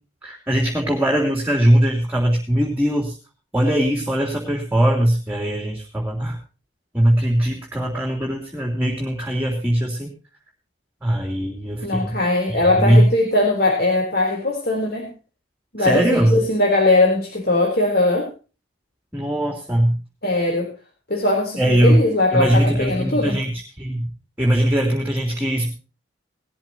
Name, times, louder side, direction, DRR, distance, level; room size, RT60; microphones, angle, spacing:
voice 1, 0.2-3.1 3.5-6.4 6.9-10.1 11.0-12.1 12.5-13.1 15.8-16.4 19.1-20.0 21.6-22.0 22.3-23.5 23.8-24.1 24.4-25.7, right 1 dB, 10° right, 1 dB, 3.2 m, -20 dB
voice 2, 11.8-15.1 15.7-18.3 20.2-20.7 21.1-23.4, left 2 dB, 50° left, 0 dB, 3.7 m, -20 dB
19.0 x 13.5 x 2.9 m, 0.34 s
head